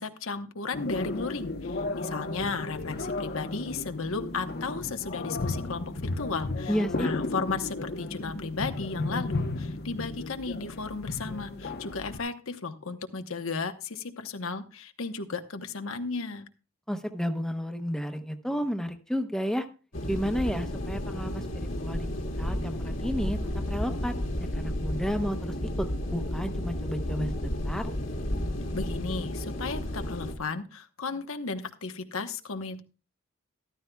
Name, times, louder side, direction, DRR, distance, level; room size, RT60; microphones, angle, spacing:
voice 1, 0.0-16.5 28.7-32.8, left 4 dB, 85° left, 7 dB, 1.1 m, -34 dB
sound 1, 0.7-12.2, left 2 dB, 50° left, 0.9 m, -34 dB
voice 2, 6.7-7.1 16.9-19.7 20.1-21.5 21.8-22.1 22.4-23.4 23.7-27.9, equal, 5° left, 6 dB, 0.8 m, -32 dB
sound 2, 19.9-30.3, left 1 dB, 70° left, 1.8 m, -32 dB
14.0 x 13.0 x 2.3 m, 0.34 s
head